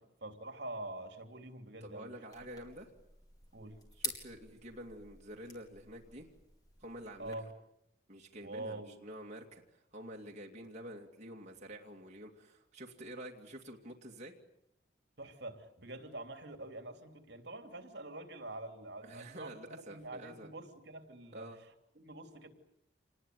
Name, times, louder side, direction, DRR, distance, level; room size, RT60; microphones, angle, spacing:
voice 1, 0.2-2.1 3.5-3.8 7.2-7.5 8.4-9.0 15.2-22.5, right 2 dB, 65° right, 7 dB, 3.0 m, -46 dB
voice 2, 1.8-2.9 4.0-6.3 6.8-7.4 8.1-14.4 19.0-20.5 21.3-21.6, right 1 dB, 35° right, 0 dB, 2.6 m, -48 dB
sound 1, 2.3-7.3, left 2 dB, 20° left, 4.4 m, -47 dB
27.0 x 20.5 x 9.5 m, 0.78 s
head